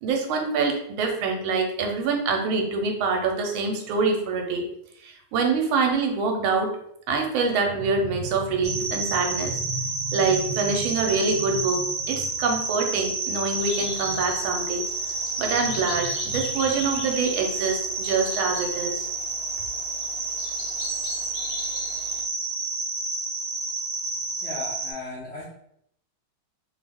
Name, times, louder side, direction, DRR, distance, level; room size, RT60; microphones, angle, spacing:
voice 1, 0.0-4.6 5.0-6.7 7.1-14.8 15.4-19.1, right 4 dB, 80° right, 3 dB, 1.4 m, -25 dB
sound 1, 8.6-24.9, right 3 dB, 65° right, 0.8 m, -30 dB
sound 2, 13.6-22.2, left 2 dB, 65° left, 1.2 m, -40 dB
voice 2, 24.4-25.4, left 3 dB, 85° left, -7 dB, 0.5 m, -35 dB
3.3 x 2.3 x 3.4 m, 0.71 s
omnidirectional pair, 2.3 m